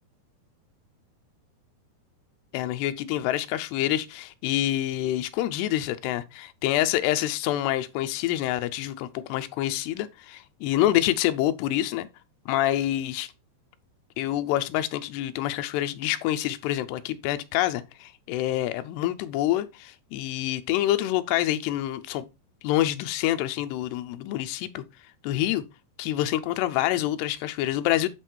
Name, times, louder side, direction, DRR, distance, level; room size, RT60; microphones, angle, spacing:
voice 1, 2.5-12.1 12.5-13.3 14.2-22.3 22.6-24.8 25.2-25.6 26.0-28.1, left 13 dB, 85° left, 2.9 m, -27 dB
9.7 x 4.6 x 4.4 m
omnidirectional pair, 4.8 m